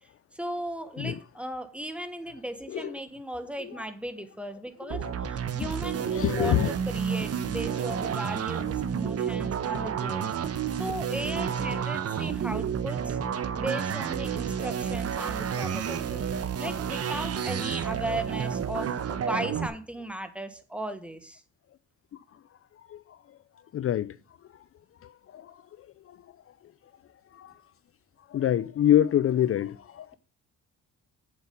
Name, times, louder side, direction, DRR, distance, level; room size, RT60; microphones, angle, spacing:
voice 1, 0.3-10.3 10.7-13.2 13.6-16.2 16.6-21.4, right 1 dB, 5° right, 1.4 m, -36 dB
voice 2, 2.7-3.0 3.6-3.8 4.9-5.1 5.6-5.7 6.1-6.7 22.9-23.0 23.7-24.1 25.3-25.4 27.4-27.5 28.3-30.1, left 11 dB, 50° left, 0.5 m, -25 dB
sound 1, 4.9-19.7, right 7 dB, 55° right, 1.1 m, -30 dB
8.2 x 7.1 x 5.3 m
cardioid pair, 90°, 30 cm